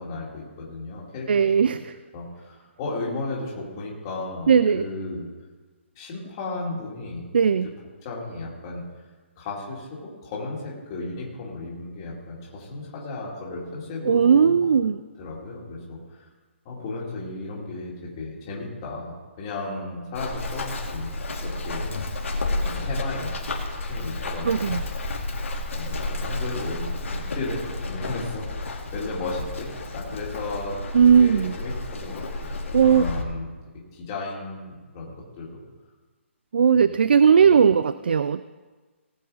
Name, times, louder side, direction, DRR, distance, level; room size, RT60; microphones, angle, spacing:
voice 1, 0.0-1.3 1.6-1.8 2.1-5.3 6.0-7.2 7.6-7.7 8.0-8.8 9.4-14.7 15.2-16.2 16.6-22.2 22.5-23.3 23.8-24.8 25.3-25.4 25.7-30.8 31.0-33.5 33.9-35.6 36.7-36.9 37.4-37.5, left 2 dB, 20° left, -5 dB, 2.1 m, -35 dB
voice 2, 1.3-2.0 4.5-4.8 7.3-7.7 14.1-15.0 24.4-24.8 30.9-31.5 32.7-33.0 36.5-38.4, right 7 dB, 50° right, 14 dB, 0.3 m, -18 dB
Run, 20.1-33.2, left 2 dB, 75° left, 2.3 m, -31 dB
18.5 x 7.0 x 4.9 m, 1.3 s
hypercardioid pair, 180°, 7 cm